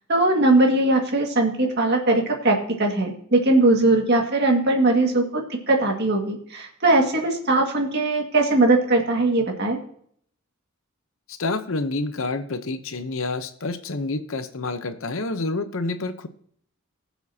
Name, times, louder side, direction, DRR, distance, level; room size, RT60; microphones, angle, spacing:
voice 1, 0.1-9.8, right 2 dB, 50° right, 2 dB, 2.0 m, -20 dB
voice 2, 11.3-16.3, left 3 dB, 65° left, 9 dB, 0.9 m, -28 dB
20.5 x 7.2 x 2.8 m, 0.62 s
head